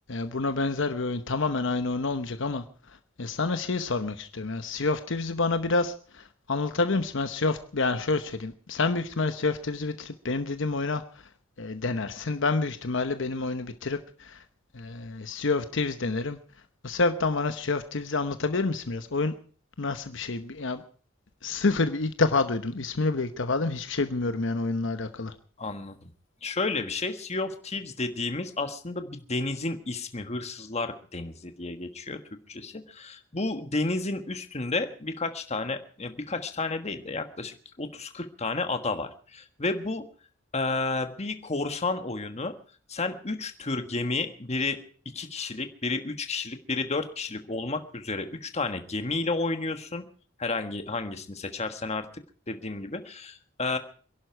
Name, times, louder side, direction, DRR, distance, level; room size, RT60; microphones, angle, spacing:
voice 1, 0.1-2.6 3.2-11.0 11.6-14.4 14.7-16.4 16.8-19.3 19.8-20.8 21.4-25.3, left 3 dB, 65° left, 9 dB, 1.0 m, -28 dB
voice 2, 25.6-26.1 26.4-32.2 32.5-40.0 40.5-42.5 42.9-44.8 45.1-50.0 50.4-52.1 52.5-53.8, left 3 dB, 35° left, 8 dB, 1.5 m, -31 dB
26.0 x 11.5 x 4.6 m, 0.42 s
head